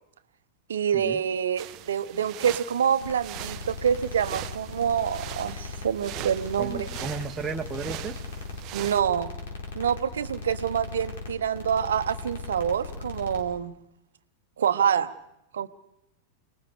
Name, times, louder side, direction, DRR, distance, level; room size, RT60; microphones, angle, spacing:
voice 1, 0.7-6.9 8.7-9.3 9.7-13.7 14.6-15.1 15.5-15.7, right 8 dB, 65° right, 12 dB, 1.1 m, -26 dB
sound 1, 1.6-9.0, right 16 dB, 40° right, 0.7 m, -41 dB
sound 2, 3.0-13.4, left 3 dB, 60° left, 4.1 m, -38 dB
voice 2, 6.6-8.2, right 5 dB, 15° right, 3 dB, 1.5 m, -34 dB
29.0 x 20.0 x 5.0 m, 0.84 s
figure-of-eight pair, 90°, 0 cm